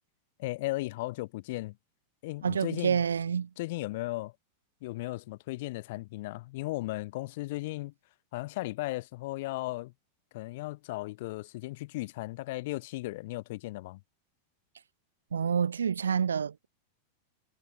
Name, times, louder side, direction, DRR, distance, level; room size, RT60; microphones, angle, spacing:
voice 1, 0.4-1.8 2.2-3.0 3.6-4.3 4.8-7.9 8.3-9.9 10.3-14.0, left 20 dB, 50° left, 0.9 m, -36 dB
voice 2, 2.4-3.5 15.3-16.7, right 7 dB, 70° right, 0.8 m, -28 dB
figure-of-eight pair, 90°, 0 cm